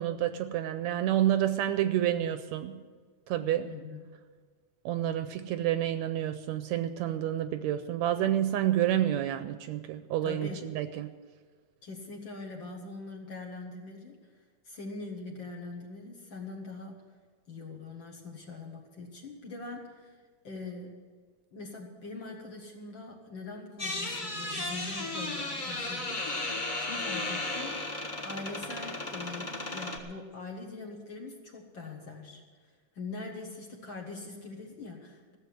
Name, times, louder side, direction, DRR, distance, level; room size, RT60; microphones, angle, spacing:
voice 1, 0.0-2.8 3.3-3.7 4.9-11.1, right 12 dB, 80° right, 10 dB, 1.7 m, -29 dB
voice 2, 3.7-4.0 10.2-10.6 11.8-14.2 14.7-17.0 17.5-20.2 20.4-20.9 21.5-35.4, left 3 dB, 50° left, 1 dB, 1.7 m, -43 dB
sound 1, 23.8-30.0, left 2 dB, 30° left, 0.8 m, -35 dB
14.5 x 7.5 x 9.5 m, 1.5 s
omnidirectional pair, 3.5 m